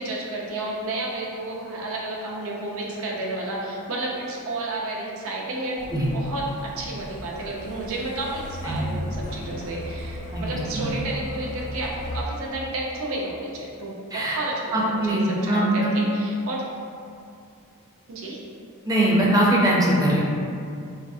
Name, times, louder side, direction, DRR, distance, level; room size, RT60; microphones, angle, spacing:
voice 1, 0.0-5.9 6.1-16.6 18.1-18.5, right 2 dB, 65° right, -3 dB, 0.6 m, -31 dB
Truck, 5.8-12.2, left 1 dB, 35° left, 0.3 m, -36 dB
voice 2, 8.6-9.0 10.3-10.9 14.1-14.4 14.7-15.9 18.8-20.2, right 1 dB, 15° right, -5 dB, 0.5 m, -22 dB
5.0 x 2.0 x 2.6 m, 2.5 s
head